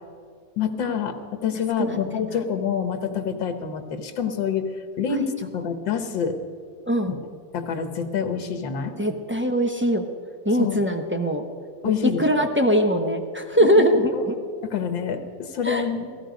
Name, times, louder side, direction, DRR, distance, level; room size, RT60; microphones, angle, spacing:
voice 1, 0.6-1.2 1.4-4.6 5.0-6.4 7.1-7.2 7.5-8.9 10.6-10.9 11.8-12.5 13.8-14.2 14.6-16.1, left 7 dB, 85° left, 7 dB, 2.0 m, -27 dB
voice 2, 1.8-2.3 6.9-7.1 9.0-10.0 10.4-11.4 12.2-14.4 15.6-15.9, equal, 10° right, 3 dB, 0.5 m, -21 dB
17.5 x 16.0 x 5.1 m, 2.1 s
omnidirectional pair, 2.0 m